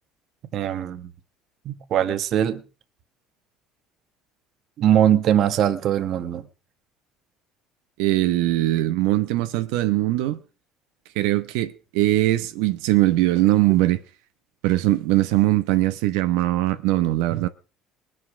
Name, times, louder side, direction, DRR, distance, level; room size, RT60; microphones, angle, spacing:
voice 1, 0.5-1.1 1.6-2.6 4.8-6.5, right 10 dB, 40° right, 1.3 m, -21 dB
voice 2, 8.0-10.4 11.1-14.0 14.6-17.5, right 16 dB, 85° right, 1.1 m, -21 dB
21.0 x 8.3 x 6.2 m
cardioid pair, 170°, 0 cm